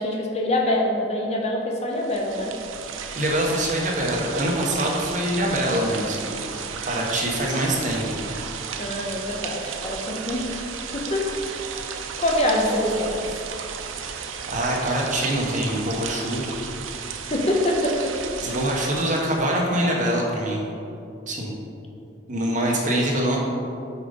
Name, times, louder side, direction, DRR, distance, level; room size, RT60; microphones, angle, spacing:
voice 1, 0.0-2.6 8.8-10.5 10.9-11.4 11.9-13.3 17.3-18.2, left 1 dB, 30° left, 0 dB, 0.7 m, -25 dB
sound 1, 1.9-19.6, right 6 dB, 85° right, 0.5 m, -34 dB
voice 2, 2.9-6.3 6.8-8.3 13.9-14.0 14.5-16.5 18.4-20.6 21.3-21.5 22.3-23.4, right 1 dB, 40° right, -2 dB, 1.1 m, -24 dB
5.8 x 5.0 x 5.3 m, 2.6 s
head